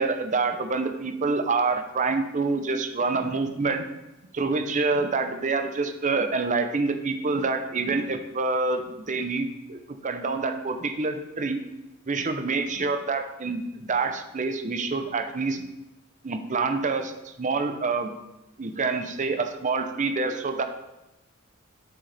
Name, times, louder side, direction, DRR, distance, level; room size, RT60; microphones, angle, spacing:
voice 1, 0.0-3.9 4.3-11.6 12.1-15.6 16.2-18.1 18.6-20.6, right 3 dB, 35° right, 7 dB, 0.6 m, -27 dB
7.7 x 6.5 x 3.4 m, 0.97 s
head